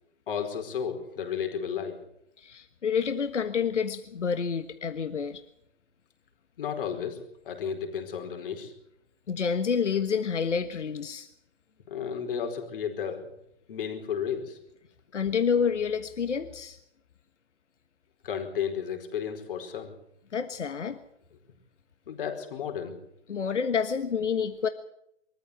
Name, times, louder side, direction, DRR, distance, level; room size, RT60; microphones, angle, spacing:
voice 1, 0.3-2.0 6.6-8.7 11.9-13.2 13.7-14.6 18.2-19.9 22.1-23.0, left 7 dB, 50° left, 5 dB, 4.7 m, -33 dB
voice 2, 2.4-5.4 9.3-11.3 15.1-16.8 20.3-21.0 23.3-24.7, left 6 dB, 80° left, 10 dB, 1.5 m, -28 dB
23.0 x 14.0 x 8.2 m, 0.77 s
hypercardioid pair, 150°, 35 cm